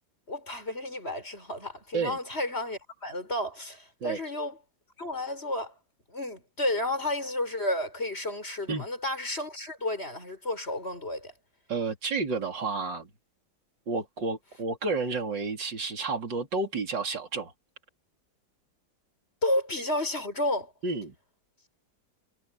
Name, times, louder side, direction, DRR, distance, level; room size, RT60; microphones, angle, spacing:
voice 1, 0.3-4.6 5.0-5.7 6.1-11.3 19.4-20.7, left 1 dB, 30° left, 6.5 m, -31 dB
voice 2, 11.7-13.1 13.9-17.5 20.8-21.1, right 4 dB, 65° right, 4.2 m, -31 dB
omnidirectional pair, 2.1 m